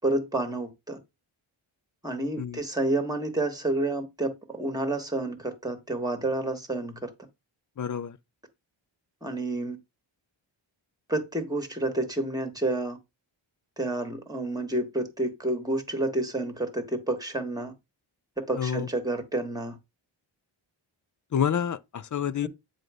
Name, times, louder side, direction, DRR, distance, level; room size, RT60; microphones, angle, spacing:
voice 1, 0.0-1.0 2.0-7.1 9.2-9.8 11.1-13.0 13.8-17.7 18.5-19.8 22.4-22.5, right 2 dB, 10° right, 1.4 m, -29 dB
voice 2, 7.8-8.2 18.5-18.9 21.3-22.5, left 8 dB, 40° left, 0.5 m, -28 dB
7.5 x 2.6 x 4.9 m
cardioid pair, 55°, 49 cm